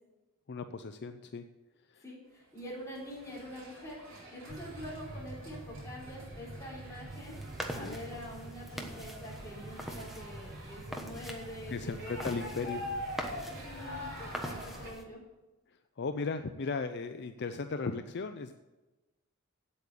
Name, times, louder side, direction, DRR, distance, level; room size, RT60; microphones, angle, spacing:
voice 1, 0.5-1.4 1.9-2.0 7.8-8.0 11.7-12.8 15.7-18.5, left 4 dB, 50° left, 8 dB, 0.5 m, -36 dB
voice 2, 2.0-7.4 7.7-12.9 13.4-15.2, equal, 15° left, -5 dB, 3.9 m, -45 dB
sound 1, 2.6-14.9, left 1 dB, 60° right, 4.3 m, -46 dB
sound 2, 4.5-15.0, right 1 dB, 40° right, 0.9 m, -47 dB
sound 3, 7.1-15.0, equal, ahead, 1.2 m, -44 dB
8.5 x 8.4 x 8.3 m, 1.1 s
head